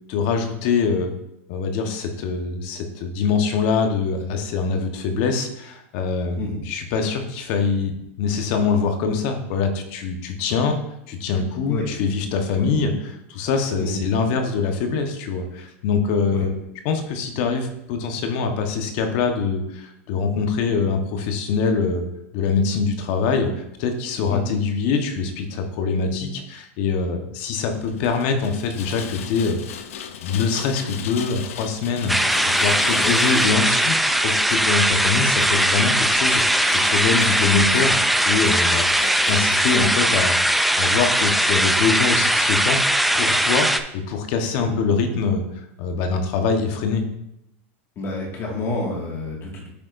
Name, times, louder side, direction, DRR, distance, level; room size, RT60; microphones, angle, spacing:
voice 1, 0.1-1.1 1.5-10.8 11.1-16.5 16.8-22.0 22.3-29.8 30.2-32.2 32.6-38.0 38.2-38.8 39.3-42.8 43.1-43.7 44.1-45.4 45.8-47.0, left 5 dB, 55° left, 5 dB, 1.1 m, -24 dB
Rain, 27.8-40.2, left 8 dB, 80° left, 0.6 m, -36 dB
sound 1, 32.1-43.8, right 1 dB, ahead, 0.4 m, -20 dB
voice 2, 48.0-49.7, left 2 dB, 35° left, -1 dB, 1.9 m, -29 dB
8.4 x 6.4 x 2.6 m, 0.80 s
supercardioid pair, 140°, 7 cm